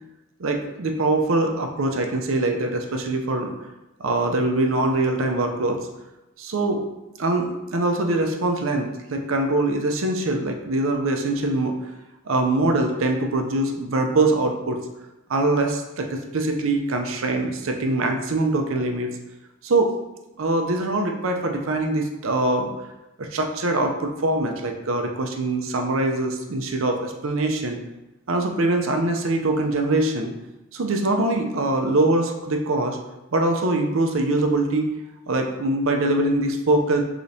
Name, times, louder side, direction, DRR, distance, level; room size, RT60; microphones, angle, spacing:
voice 1, 0.4-3.5 4.0-5.9 6.4-6.8 7.2-11.7 12.3-14.8 15.3-19.1 19.6-19.9 20.4-22.7 23.2-27.8 28.3-30.3 30.7-33.0 33.3-34.9 35.3-37.0, right 2 dB, 70° right, 3 dB, 0.6 m, -23 dB
5.0 x 3.9 x 2.7 m, 0.98 s
head